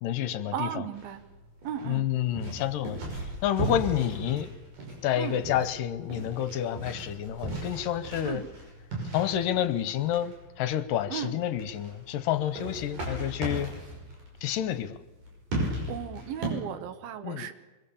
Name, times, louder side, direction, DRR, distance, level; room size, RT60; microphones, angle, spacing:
voice 1, 0.0-0.7 1.9-4.5 5.0-8.4 9.1-13.7 14.4-15.0 17.2-17.5, left 11 dB, 75° left, 12 dB, 2.4 m, -29 dB
voice 2, 0.5-1.2 1.6-2.1 5.2-5.4 8.2-8.5 11.1-11.4 12.8-13.0 15.9-17.5, right 8 dB, 85° right, 10 dB, 3.2 m, -35 dB
sound 1, 0.9-16.5, right 1 dB, 60° right, 7.2 m, -37 dB
23.5 x 22.5 x 7.1 m, 1.1 s
omnidirectional pair, 4.2 m